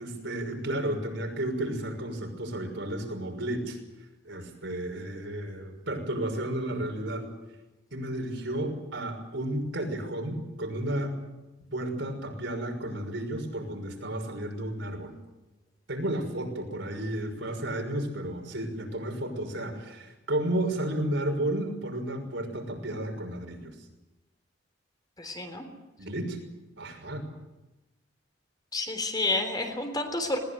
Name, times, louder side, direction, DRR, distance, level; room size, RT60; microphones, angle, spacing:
voice 1, 0.0-3.8 4.2-7.3 7.9-11.1 11.7-15.1 15.9-23.7 26.0-26.4 26.8-27.2, right 1 dB, 70° right, 3 dB, 6.0 m, -32 dB
voice 2, 25.2-25.6 28.7-30.4, left 2 dB, 20° left, 5 dB, 3.5 m, -30 dB
21.0 x 20.0 x 9.3 m, 1.0 s
head